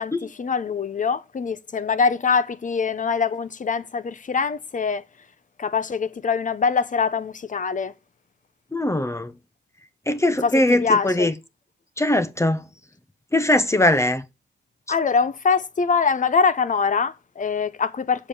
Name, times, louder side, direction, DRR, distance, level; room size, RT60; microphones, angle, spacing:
voice 1, 0.0-5.0 5.6-7.9 10.4-10.5 10.8-11.3 14.9-18.3, left 5 dB, 40° left, 0.9 m, -23 dB
voice 2, 8.7-9.3 10.1-11.3 12.0-12.7 13.3-14.2, left 1 dB, 15° left, 0.8 m, -20 dB
7.7 x 6.8 x 7.4 m
wide cardioid pair, 120°, 20 cm